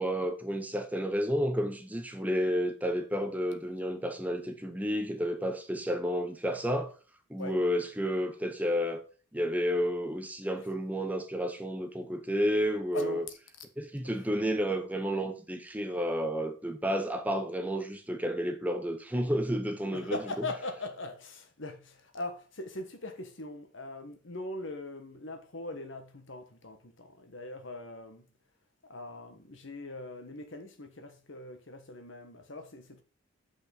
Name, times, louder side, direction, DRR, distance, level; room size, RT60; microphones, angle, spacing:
voice 1, 0.0-6.9 7.3-9.0 9.3-13.2 13.8-20.2, equal, 5° right, 0.7 m, -31 dB
voice 2, 12.9-13.3 14.0-14.3 19.9-28.3 28.9-33.0, left 2 dB, 60° left, 1.4 m, -41 dB
6.7 x 5.5 x 5.2 m
head